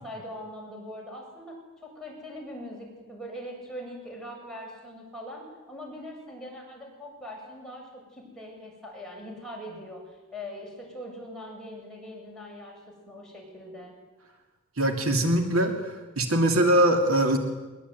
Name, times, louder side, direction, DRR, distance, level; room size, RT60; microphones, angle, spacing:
voice 1, 0.0-1.6 1.8-5.4 5.7-10.0 10.3-13.9, equal, 5° left, -3 dB, 8.0 m, -41 dB
voice 2, 14.8-15.8 16.2-17.4, right 1 dB, 70° right, 4 dB, 2.7 m, -22 dB
22.5 x 21.5 x 9.7 m, 1.2 s
head